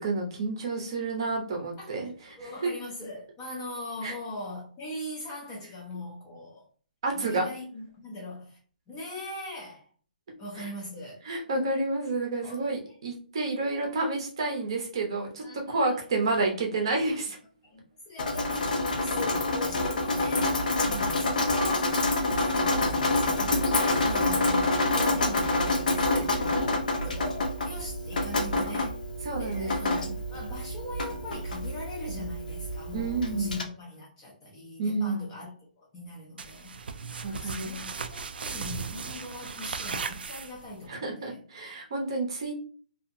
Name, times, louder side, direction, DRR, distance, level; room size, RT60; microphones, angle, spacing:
voice 1, 0.0-2.7 4.0-4.1 7.0-7.5 10.6-10.7 11.2-17.4 20.9-21.1 26.1-26.6 29.2-30.1 32.9-33.6 34.8-35.2 37.2-37.9 40.9-42.5, right 3 dB, 30° right, 1 dB, 0.6 m, -30 dB
voice 2, 2.4-6.7 7.1-8.6 8.9-9.9 10.4-11.2 12.4-13.0 13.7-14.0 15.4-16.1 17.6-20.7 21.2-22.0 22.4-26.4 27.0-29.0 29.4-35.5 35.8-41.4, left 1 dB, 10° left, -4 dB, 0.4 m, -41 dB
Drip, 18.2-33.6, left 2 dB, 55° left, 0.6 m, -27 dB
sound 1, 36.4-40.9, right 5 dB, 85° right, 0.3 m, -37 dB
2.7 x 2.4 x 2.5 m, 0.42 s
hypercardioid pair, 180°, 5 cm